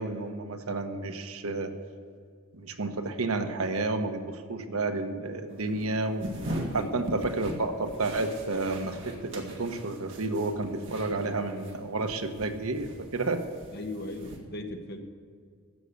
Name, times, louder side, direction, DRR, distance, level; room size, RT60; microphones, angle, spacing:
voice 1, 0.0-1.7 2.5-6.3 6.7-13.4, right 3 dB, 75° right, 7 dB, 1.1 m, -31 dB
sound 1, 5.5-11.7 12.0-14.4, equal, 55° right, 1.9 m, -40 dB
voice 2, 6.7-7.1 13.7-15.0, left 2 dB, 50° left, 5 dB, 1.1 m, -38 dB
15.0 x 6.4 x 8.2 m, 2.1 s
head